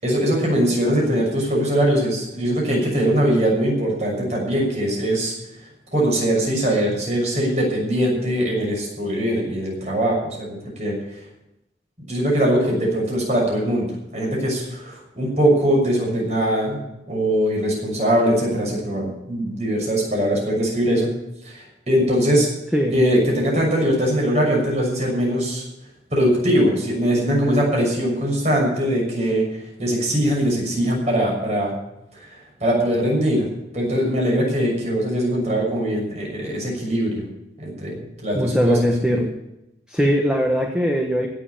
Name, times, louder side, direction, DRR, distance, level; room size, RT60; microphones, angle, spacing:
voice 1, 0.0-5.3 5.9-10.5 10.8-11.0 12.1-21.1 21.4-22.5 22.9-25.6 26.1-29.4 29.8-31.8 32.1-32.3 32.6-33.5 33.7-37.2 37.6-38.8 39.1-39.3, equal, 35° right, -2 dB, 6.4 m, -21 dB
voice 2, 38.3-39.3 39.9-41.3, equal, 5° right, 1 dB, 1.3 m, -20 dB
16.5 x 7.6 x 8.6 m, 0.89 s
head